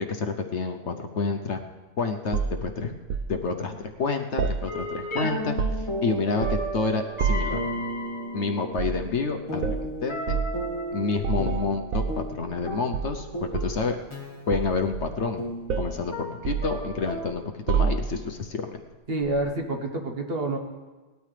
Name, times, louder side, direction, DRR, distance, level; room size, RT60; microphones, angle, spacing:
voice 1, 0.0-1.6 2.0-2.9 3.3-7.6 8.3-10.4 10.9-14.0 14.5-15.4 15.8-18.8, left 4 dB, 60° left, 5 dB, 1.0 m, -29 dB
sound 1, 2.3-3.3 4.4-5.1 5.4-6.0 6.4-6.8 7.2-7.6 8.7-9.0 9.6-9.8 10.3-10.5 11.2-12.6 12.9-13.9 14.5-15.4 15.7-16.0 16.4-17.3 17.7-18.3 19.2-19.4, right 6 dB, 75° right, 1.1 m, -28 dB
sound 2, 4.7-17.3, equal, 20° left, 2.1 m, -34 dB
voice 2, 19.1-20.6, right 2 dB, 45° right, 3 dB, 1.4 m, -28 dB
19.0 x 12.5 x 3.3 m, 1.2 s
omnidirectional pair, 1.5 m